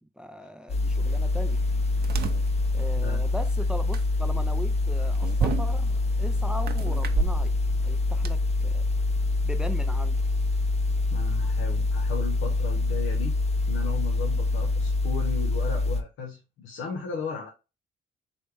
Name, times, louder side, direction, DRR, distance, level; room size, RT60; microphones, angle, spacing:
voice 1, 0.2-1.6 2.7-8.9 9.4-10.2, equal, 5° right, 0.4 m, -39 dB
sound 1, 0.7-16.0, left 2 dB, 30° left, 0.7 m, -25 dB
sound 2, 1.0-8.3, right 6 dB, 55° right, 0.6 m, -34 dB
voice 2, 11.1-13.4 13.7-17.5, left 5 dB, 90° left, 0.9 m, -36 dB
4.1 x 3.3 x 3.3 m
cardioid pair, 90°, 20 cm